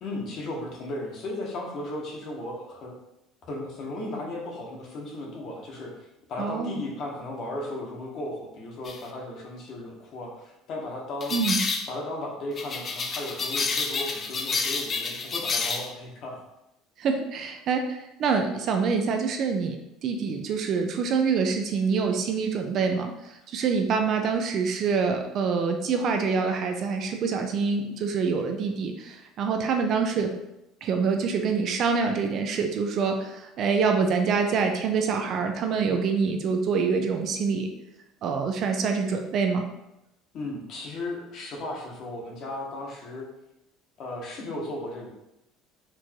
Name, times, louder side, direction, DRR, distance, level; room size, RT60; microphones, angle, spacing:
voice 1, 0.0-2.9 3.5-11.3 11.9-16.4 40.3-43.3 44.0-45.1, left 1 dB, 40° left, -1 dB, 1.1 m, -35 dB
voice 2, 6.4-6.8 11.3-11.6 17.0-30.3 30.8-37.7 38.2-39.6, right 5 dB, 40° right, 5 dB, 0.4 m, -26 dB
sound 1, 8.9-9.0 11.2-11.9 12.6-15.9, left 4 dB, 25° left, 0.4 m, -29 dB
4.5 x 2.5 x 4.4 m, 0.88 s
cardioid pair, 165°, 0 cm